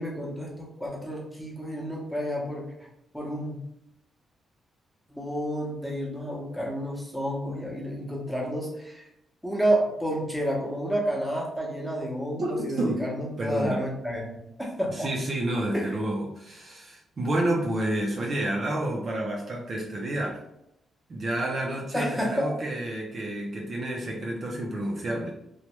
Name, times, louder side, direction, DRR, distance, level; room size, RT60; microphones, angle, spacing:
voice 1, 0.0-2.9 3.1-3.6 5.1-9.1 9.4-14.3 14.6-15.1 15.7-16.0 21.9-22.5, equal, ahead, -3 dB, 0.7 m, -30 dB
voice 2, 12.4-13.0 13.4-13.8 14.9-20.4 21.1-25.3, right 1 dB, 40° right, -1 dB, 0.4 m, -29 dB
3.1 x 2.1 x 2.9 m, 0.81 s
cardioid pair, 150°, 0 cm